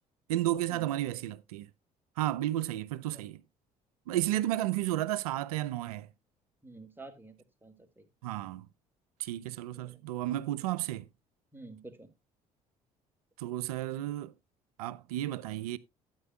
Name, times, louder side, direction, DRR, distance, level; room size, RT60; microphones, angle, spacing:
voice 1, 0.3-1.7 2.2-3.4 4.1-6.1 8.2-8.7 9.2-11.0 13.4-14.3 14.8-15.8, right 14 dB, 75° right, 0.5 m, -32 dB
voice 2, 6.6-8.1 9.7-10.0 11.5-12.1, right 2 dB, 10° right, 2.0 m, -50 dB
12.5 x 8.9 x 2.2 m
figure-of-eight pair, 55°, 19 cm